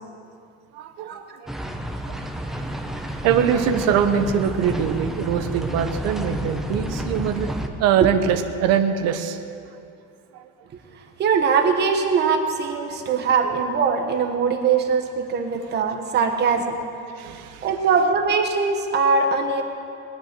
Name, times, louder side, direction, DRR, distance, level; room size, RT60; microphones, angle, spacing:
voice 1, 0.7-1.5 2.1-2.2 2.5-2.6 3.2-7.5 7.8-9.4 10.3-10.5 12.9-13.0 13.4-13.5 17.2-17.7, right 8 dB, 60° right, 7 dB, 1.2 m, -23 dB
sound 1, 1.5-7.7, right 1 dB, ahead, 0.8 m, -30 dB
voice 2, 11.2-16.8 17.2-19.6, right 5 dB, 35° right, 5 dB, 1.4 m, -21 dB
20.5 x 9.4 x 6.8 m, 2.5 s
cardioid pair, 165°, 29 cm